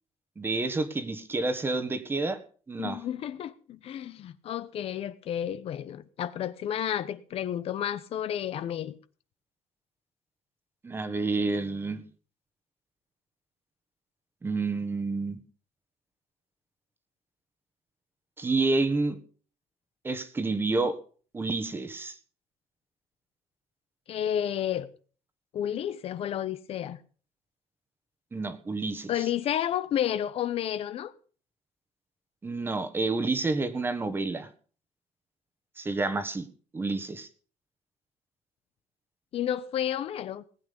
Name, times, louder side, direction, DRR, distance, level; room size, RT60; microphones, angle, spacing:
voice 1, 0.4-2.4 2.7-3.0 10.8-12.0 14.4-15.4 18.4-19.2 20.0-21.0 21.3-22.1 28.3-29.1 32.4-34.5 35.8-36.4 36.7-37.3, right 3 dB, 15° right, 1.5 m, -29 dB
voice 2, 2.8-9.0 24.1-24.9 25.5-27.0 29.1-31.1 39.3-40.4, left 10 dB, 50° left, 0.9 m, -31 dB
19.0 x 8.8 x 5.3 m
cardioid pair, 160°, 13 cm